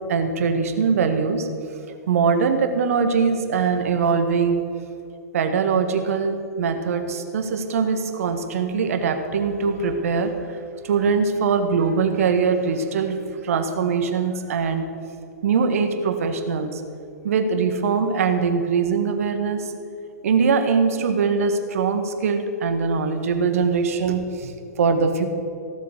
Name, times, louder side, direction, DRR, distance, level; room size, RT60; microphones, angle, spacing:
voice 1, 0.1-1.5 2.1-4.6 5.3-10.6 10.8-13.2 13.4-14.9 15.4-16.8 17.2-19.7 20.2-25.3, right 5 dB, 55° right, 7 dB, 1.6 m, -22 dB
17.0 x 7.5 x 8.2 m, 2.5 s
figure-of-eight pair, 110°, 9 cm